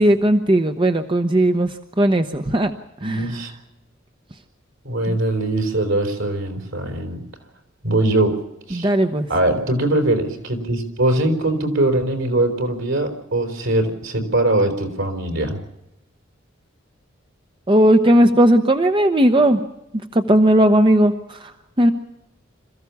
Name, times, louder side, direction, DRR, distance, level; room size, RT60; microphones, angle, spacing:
voice 1, 0.0-1.7 2.0-2.7 3.0-3.2 5.1-5.2 8.7-9.3 17.7-19.6 20.1-21.5 21.8-21.9, right 1 dB, 25° right, 7 dB, 0.9 m, -16 dB
voice 2, 3.0-3.5 4.8-7.2 7.8-8.3 8.7-8.9 9.3-15.6, right 1 dB, 70° right, 5 dB, 4.4 m, -21 dB
26.5 x 15.0 x 7.1 m, 0.88 s
head